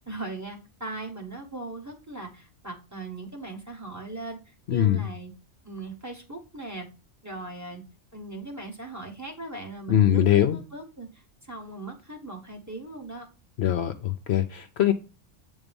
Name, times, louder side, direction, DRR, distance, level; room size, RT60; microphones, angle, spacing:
voice 1, 0.0-5.3 5.6-6.9 7.2-7.8 8.1-13.3, right 2 dB, 15° right, 1 dB, 1.3 m, -39 dB
voice 2, 4.7-5.0 9.9-10.6 13.6-14.9, left 11 dB, 65° left, 8 dB, 0.8 m, -22 dB
8.2 x 3.6 x 5.2 m, 0.31 s
omnidirectional pair, 1.3 m